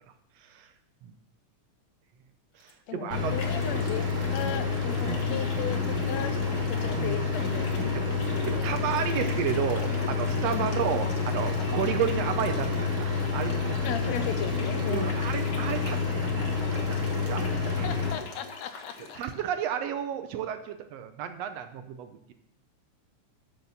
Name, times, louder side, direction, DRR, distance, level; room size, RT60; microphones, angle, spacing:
voice 1, 0.4-0.7 1.0-1.1 2.6-3.4 5.0-5.2 7.0-7.2 7.9-8.0 8.5-13.9 14.9-16.3 16.7-17.9 19.2-22.3, right 9 dB, 75° right, 9 dB, 1.6 m, -32 dB
sound 1, 2.6-2.7 3.4-19.3, left 4 dB, 55° left, 1.9 m, -43 dB
voice 2, 2.9-6.4 6.7-8.0 8.3-8.7 10.5-10.7 13.8-15.2 17.7-19.2, left 9 dB, 75° left, 10 dB, 1.8 m, -36 dB
sound 2, 3.1-18.1, left 4 dB, 25° right, 2.7 m, -28 dB
11.0 x 6.5 x 5.7 m, 0.78 s
omnidirectional pair, 3.5 m